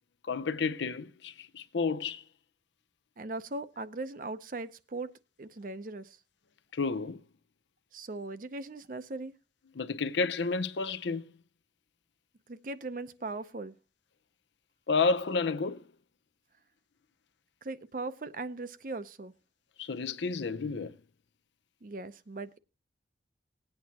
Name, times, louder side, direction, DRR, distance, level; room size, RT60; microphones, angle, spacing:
voice 1, 0.3-2.2 6.7-7.2 9.8-11.3 14.9-15.8 19.8-21.0, left 4 dB, 75° left, 0.6 m, -31 dB
voice 2, 3.2-5.1 5.4-6.2 7.9-9.3 12.5-13.8 17.6-19.3 21.8-22.6, right 2 dB, 45° right, 0.6 m, -39 dB
19.5 x 8.8 x 2.8 m
head